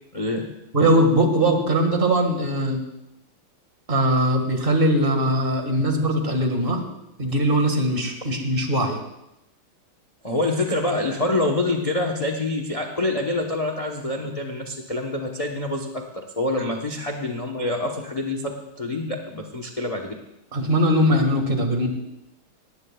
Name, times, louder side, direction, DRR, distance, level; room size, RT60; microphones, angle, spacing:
voice 1, 0.1-0.4 10.2-20.1, left 2 dB, 35° left, 3 dB, 0.6 m, -26 dB
voice 2, 0.7-2.8 3.9-6.8 7.2-9.0 20.5-21.9, right 1 dB, 25° right, 4 dB, 1.8 m, -20 dB
19.0 x 18.0 x 2.3 m, 0.87 s
omnidirectional pair, 2.3 m